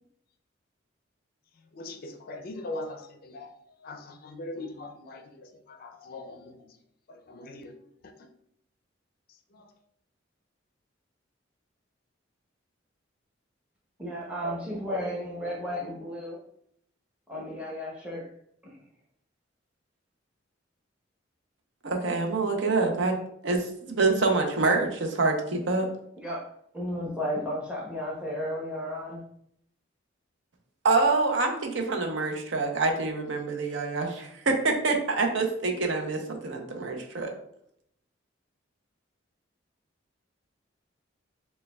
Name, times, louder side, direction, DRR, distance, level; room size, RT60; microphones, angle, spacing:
voice 1, 1.7-6.8 7.1-7.7 8.0-8.3 9.3-9.7, left 2 dB, 50° left, 0.4 m, -41 dB
voice 2, 14.0-16.4 17.3-18.3 26.2-26.4 26.7-29.2, equal, 5° right, 0.8 m, -33 dB
voice 3, 21.8-23.2 23.4-25.9 30.8-37.3, right 3 dB, 65° right, 0.6 m, -26 dB
6.2 x 2.2 x 2.2 m
head